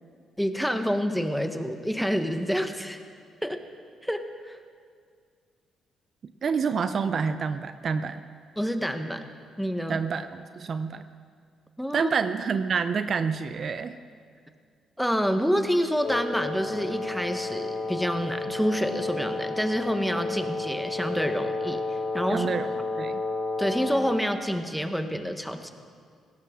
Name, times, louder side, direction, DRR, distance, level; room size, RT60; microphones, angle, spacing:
voice 1, 0.4-3.0 3.4-3.6 4.0-4.6 8.6-9.2 9.6-10.0 11.8-12.1 15.0-21.8 22.1-22.5 23.6-25.7, equal, ahead, 7 dB, 1.1 m, -28 dB
voice 2, 6.4-8.2 9.9-11.0 11.9-13.9 22.3-22.7 23.0-23.2, right 6 dB, 50° right, 10 dB, 0.6 m, -28 dB
Wind instrument woodwind instrument, 16.0-24.3, left 3 dB, 75° left, 3.0 m, -31 dB
17.0 x 17.0 x 3.7 m, 2.1 s
cardioid pair, 95°, 0 cm